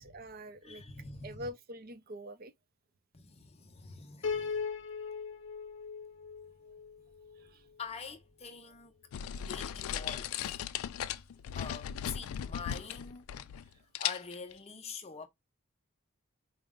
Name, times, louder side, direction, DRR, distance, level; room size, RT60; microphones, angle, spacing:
voice 1, 0.0-0.9 1.2-2.5 7.4-7.7 11.1-11.2, equal, 45° right, 0.5 m, -45 dB
voice 2, 0.6-1.5 3.1-4.7 7.8-8.9 9.4-10.5 11.5-13.7 14.0-15.3, left 5 dB, 30° left, 0.5 m, -45 dB
Piano, 4.2-7.5, left 5 dB, 60° left, 0.8 m, -38 dB
sound 1, 9.1-13.7 14.0-14.5, left 10 dB, 85° left, 0.3 m, -37 dB
4.5 x 2.0 x 3.5 m
head